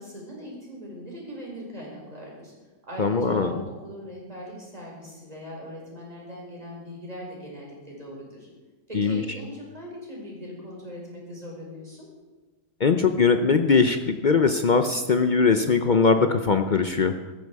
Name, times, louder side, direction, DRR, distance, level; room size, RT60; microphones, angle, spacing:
voice 1, 0.0-2.5 2.8-8.5 8.9-12.1, equal, 20° right, -3 dB, 5.1 m, -40 dB
voice 2, 3.0-3.6 8.9-9.2 12.8-17.1, left 5 dB, 60° left, 7 dB, 0.4 m, -21 dB
14.5 x 14.0 x 4.8 m, 1.2 s
omnidirectional pair, 1.7 m